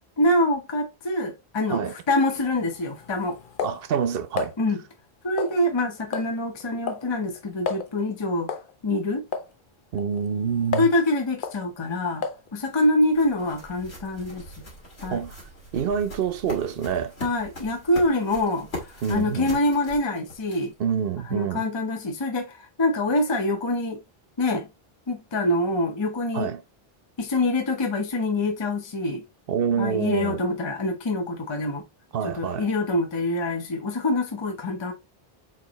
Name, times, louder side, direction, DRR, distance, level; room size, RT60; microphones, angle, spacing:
voice 1, 0.2-1.8 2.1-3.4 4.6-4.8 5.2-8.5 8.8-9.2 10.8-12.2 12.5-14.4 15.0-15.2 17.2-18.7 19.1-20.7 21.3-24.0 24.4-24.7 25.1-26.5 27.2-29.2 29.8-31.8 32.2-34.9, left 1 dB, 30° left, 0.8 m, -25 dB
sound 1, 2.3-4.5 5.4-5.8 6.1-6.4 6.6-7.1 7.4-7.5 7.7-7.9 8.5-8.7 9.3-9.5 10.0-11.0 11.4-11.6 12.2-12.5, left 5 dB, 60° left, 0.8 m, -32 dB
voice 2, 3.6-4.5 9.9-10.9 15.1-15.4 15.7-17.1 19.0-19.5 20.8-21.7 26.3-26.6 29.5-30.4 32.1-32.7, right 7 dB, 65° right, 0.8 m, -26 dB
sound 2, 12.4-20.9, left 1 dB, 85° left, 2.4 m, -41 dB
4.5 x 3.9 x 3.0 m
omnidirectional pair, 1.0 m